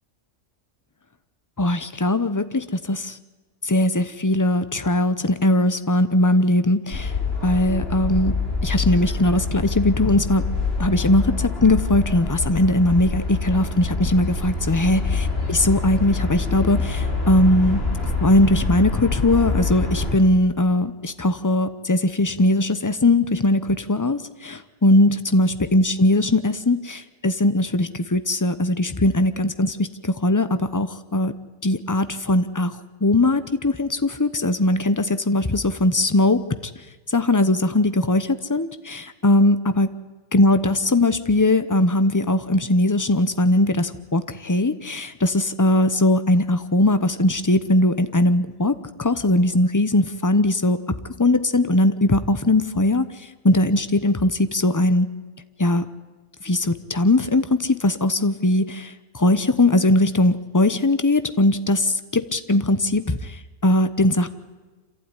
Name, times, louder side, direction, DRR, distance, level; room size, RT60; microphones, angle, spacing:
voice 1, 1.6-3.2 3.6-7.1 7.4-8.3 8.6-10.4 10.8-17.8 18.2-31.3 31.6-32.8 33.0-36.4 37.1-39.9 40.3-48.7 49.0-50.8 51.2-53.1 53.4-55.1 55.6-55.8 56.4-64.3, left 1 dB, 15° left, 12 dB, 0.8 m, -20 dB
sound 1, 6.9-20.2, left 3 dB, 50° left, 3.9 m, -26 dB
26.5 x 15.0 x 9.9 m, 1.3 s
omnidirectional pair, 1.4 m